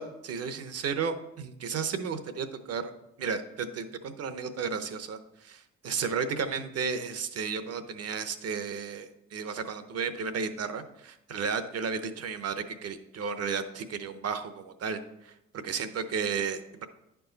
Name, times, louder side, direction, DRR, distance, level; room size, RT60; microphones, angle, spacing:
voice 1, 0.0-2.9 3.2-16.9, right 6 dB, 55° right, 10 dB, 0.8 m, -33 dB
10.5 x 4.7 x 3.9 m, 0.86 s
cardioid pair, 90°, 30 cm